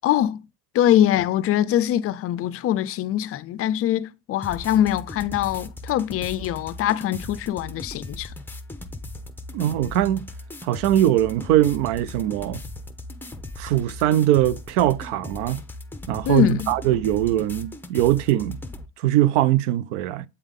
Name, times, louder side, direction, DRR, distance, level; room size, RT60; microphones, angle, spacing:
voice 1, 0.0-0.4 0.7-8.3 16.2-16.7, left 11 dB, 40° left, 0.4 m, -23 dB
sound 1, 4.4-18.9, left 2 dB, 5° left, 0.8 m, -38 dB
voice 2, 9.5-10.3 10.6-12.6 13.6-15.6 16.1-18.6 19.0-20.2, right 13 dB, 80° right, 0.5 m, -21 dB
8.1 x 3.6 x 3.6 m
supercardioid pair, 95°, 35 cm